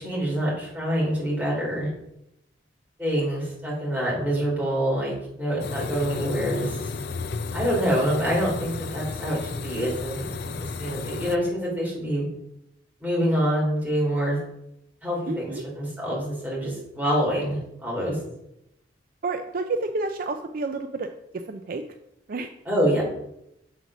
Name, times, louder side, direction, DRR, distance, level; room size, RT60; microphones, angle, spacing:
voice 1, 0.0-1.9 3.0-6.9 7.5-12.3 13.0-14.4 15.0-18.2 22.6-23.0, equal, 10° right, -5 dB, 3.3 m, -26 dB
sound 1, 5.6-11.4, left 4 dB, 60° left, 0.4 m, -33 dB
voice 2, 15.3-15.6 19.2-21.1 21.5-21.8 22.3-22.5, right 3 dB, 50° right, 7 dB, 0.4 m, -29 dB
7.4 x 4.0 x 6.0 m, 0.81 s
head